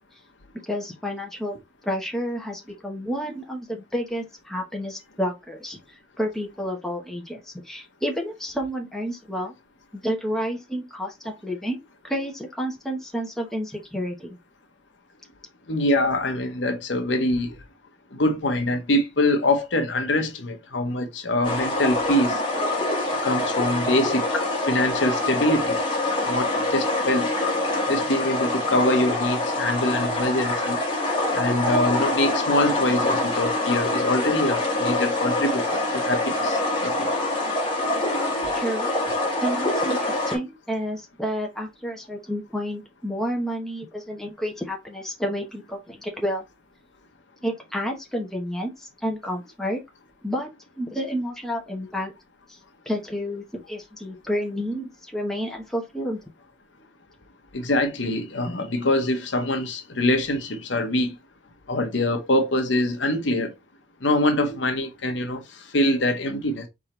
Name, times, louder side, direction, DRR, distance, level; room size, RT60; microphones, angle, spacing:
voice 1, 0.7-1.6 1.8-5.8 6.2-9.5 9.9-14.4 38.5-38.9 39.4-46.4 47.4-49.8 50.2-50.5 50.8-52.1 52.9-56.2, equal, ahead, 1.0 m, -30 dB
voice 2, 15.7-17.5 18.1-22.4 23.2-25.8 26.3-27.3 27.9-30.8 31.3-37.0 57.5-61.1 61.7-63.5 64.0-66.7, left 1 dB, 80° left, 1.0 m, -24 dB
sound 1, 21.4-40.4, left 2 dB, 25° left, 1.5 m, -25 dB
4.3 x 3.7 x 3.1 m
head